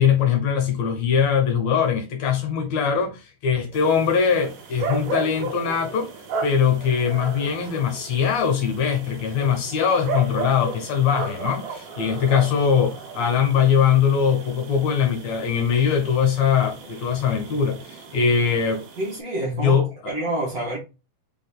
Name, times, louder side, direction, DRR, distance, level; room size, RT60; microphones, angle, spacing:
voice 1, 0.0-6.1 6.4-18.8 19.5-20.1, left 7 dB, 70° left, 1.9 m, -21 dB
sound 1, 3.7-19.2, right 4 dB, 80° right, 2.6 m, -35 dB
voice 2, 19.0-20.8, right 1 dB, 45° right, 1.2 m, -28 dB
5.1 x 3.8 x 2.2 m
omnidirectional pair, 3.7 m